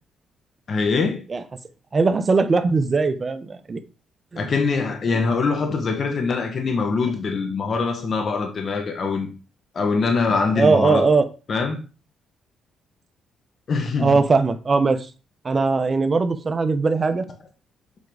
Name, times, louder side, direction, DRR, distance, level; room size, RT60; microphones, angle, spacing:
voice 1, 0.7-1.2 4.4-9.3 9.7-11.1 11.5-11.8 13.7-14.2, left 4 dB, 50° left, 1.6 m, -23 dB
voice 2, 1.9-3.8 4.3-4.5 10.6-11.2 14.0-15.0 15.4-17.2, right 4 dB, 35° right, 0.9 m, -20 dB
7.5 x 4.7 x 4.0 m
cardioid pair, 90°, 0 cm